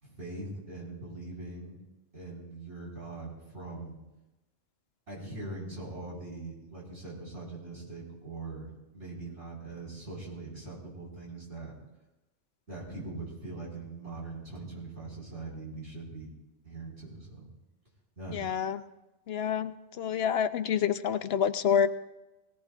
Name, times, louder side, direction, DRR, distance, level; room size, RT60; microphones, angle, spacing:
voice 1, 0.0-1.8 2.1-4.0 5.1-11.7 12.7-16.3 16.6-17.5 18.2-18.4, right 2 dB, 90° right, -5 dB, 5.3 m, -42 dB
voice 2, 18.3-18.8 19.3-21.9, left 8 dB, 65° left, 11 dB, 0.8 m, -28 dB
19.5 x 18.0 x 2.5 m, 1.0 s
omnidirectional pair, 1.2 m